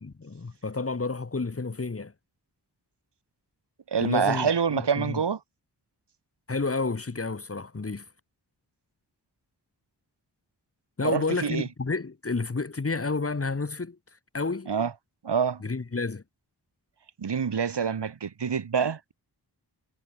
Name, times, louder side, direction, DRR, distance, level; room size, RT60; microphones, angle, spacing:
voice 1, 0.0-2.1 4.0-5.2 6.5-8.0 11.0-14.0 14.3-14.7 15.6-16.2, left 3 dB, 35° left, 1.5 m, -30 dB
voice 2, 3.9-5.4 11.0-11.7 14.7-14.9 15.2-15.6 17.2-19.1, right 6 dB, 85° right, 2.7 m, -26 dB
cardioid pair, 45°, 41 cm